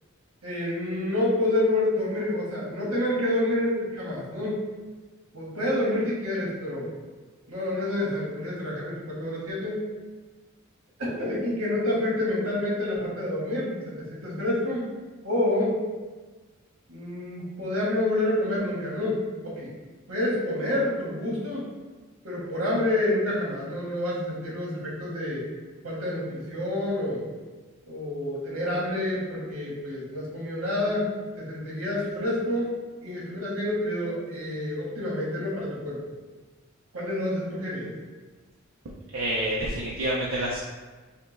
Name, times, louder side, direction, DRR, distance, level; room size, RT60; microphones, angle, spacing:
voice 1, 0.4-4.7 5.3-6.9 7.5-9.8 11.0-14.9 15.2-15.8 16.9-19.7 20.1-21.7 22.2-25.4 25.8-27.3 27.9-31.1 31.4-32.7 33.0-36.0 36.9-37.9, left 1 dB, 85° right, -5 dB, 1.4 m, -28 dB
voice 2, 39.1-40.6, right 1 dB, 65° right, -5 dB, 0.6 m, -27 dB
5.5 x 2.2 x 3.2 m, 1.3 s
head